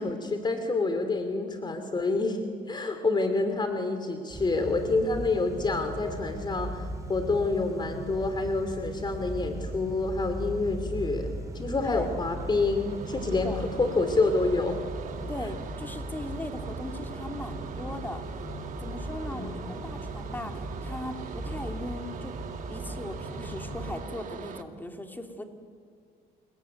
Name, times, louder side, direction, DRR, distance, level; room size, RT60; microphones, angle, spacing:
voice 1, 0.0-2.4 2.7-14.8 19.3-19.8, left 3 dB, 25° left, 7 dB, 2.7 m, -28 dB
sound 1, 4.3-24.0, right 1 dB, 20° right, 4.7 m, -38 dB
sound 2, 11.0-24.6, right 7 dB, 50° right, 2.1 m, -42 dB
voice 2, 15.3-18.2 18.8-22.3 22.7-25.5, left 1 dB, 10° left, 4 dB, 3.0 m, -38 dB
28.5 x 22.0 x 9.5 m, 2.1 s
cardioid pair, 110°, 17 cm